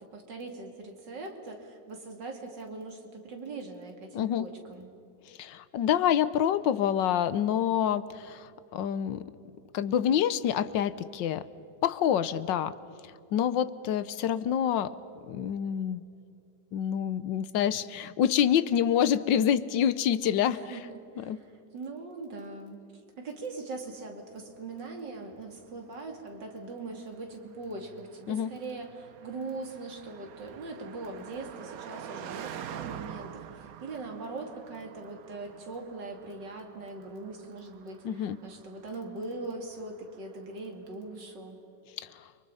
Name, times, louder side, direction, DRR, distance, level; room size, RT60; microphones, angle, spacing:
voice 1, 0.1-4.9 20.5-20.8 21.1-22.8 23.2-41.6, right 3 dB, 75° right, 3 dB, 3.3 m, -41 dB
voice 2, 4.1-4.5 5.3-9.2 9.7-11.4 11.8-12.7 13.3-14.9 15.3-16.0 16.7-20.6 21.2-21.4 28.3-28.5 38.0-38.4 42.0-42.1, left 9 dB, 85° left, 15 dB, 1.5 m, -27 dB
Car passing by, 24.3-40.8, right 9 dB, 60° right, 1.1 m, -47 dB
30.0 x 24.0 x 5.6 m, 2.6 s
omnidirectional pair, 1.9 m